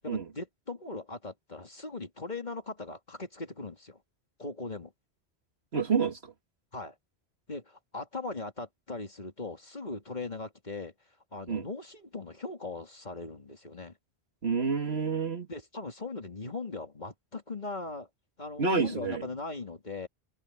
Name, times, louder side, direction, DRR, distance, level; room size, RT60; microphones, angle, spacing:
voice 1, 0.0-4.0 4.4-4.9 6.7-6.9 7.5-10.9 11.3-13.9 15.5-18.1 18.4-20.1, left 3 dB, 40° left, 2.8 m, -39 dB
voice 2, 5.7-6.3 11.5-11.7 14.4-15.5 18.6-19.3, right 5 dB, 70° right, 2.3 m, -28 dB
omnidirectional pair, 1.1 m